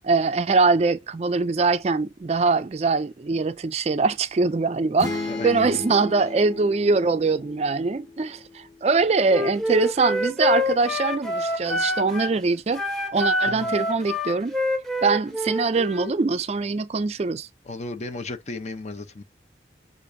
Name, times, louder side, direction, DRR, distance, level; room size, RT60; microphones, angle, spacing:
voice 1, 0.0-12.8 13.1-14.5 15.0-17.5, right 4 dB, 35° right, 0.3 m, -23 dB
sound 1, 5.0-8.7, left 2 dB, 20° left, 1.4 m, -34 dB
voice 2, 5.3-5.8 13.5-13.8 17.6-19.2, left 2 dB, 40° left, 0.7 m, -35 dB
Wind instrument woodwind instrument, 9.3-12.4 12.7-16.1, left 1 dB, ahead, 1.0 m, -26 dB
6.8 x 2.6 x 2.6 m
head